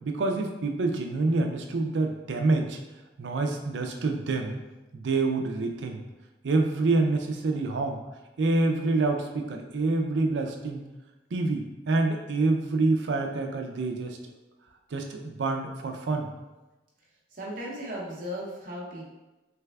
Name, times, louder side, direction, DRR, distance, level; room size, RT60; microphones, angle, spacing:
voice 1, 0.0-2.8 3.2-4.6 4.9-6.0 6.4-8.0 8.4-10.8 11.3-14.2 14.9-16.3, right 3 dB, 90° right, 3 dB, 0.4 m, -27 dB
voice 2, 17.3-19.1, equal, 50° right, -5 dB, 0.7 m, -36 dB
3.3 x 3.3 x 2.3 m, 1.1 s
head